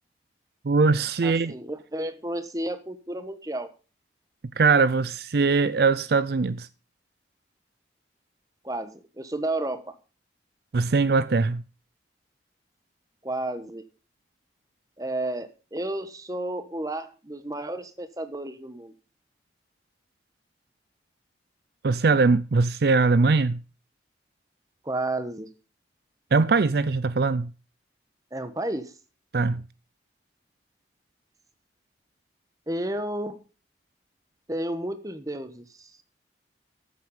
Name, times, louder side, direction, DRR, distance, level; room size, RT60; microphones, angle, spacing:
voice 1, 0.6-1.5 4.6-6.7 10.7-11.6 21.8-23.6 26.3-27.5 29.3-29.6, right 4 dB, 60° right, 0.5 m, -21 dB
voice 2, 1.2-3.7 8.6-9.9 13.2-13.8 15.0-18.9 24.8-25.5 28.3-28.9 32.7-33.4 34.5-35.9, right 1 dB, 20° right, 1.3 m, -32 dB
13.5 x 7.7 x 5.5 m
head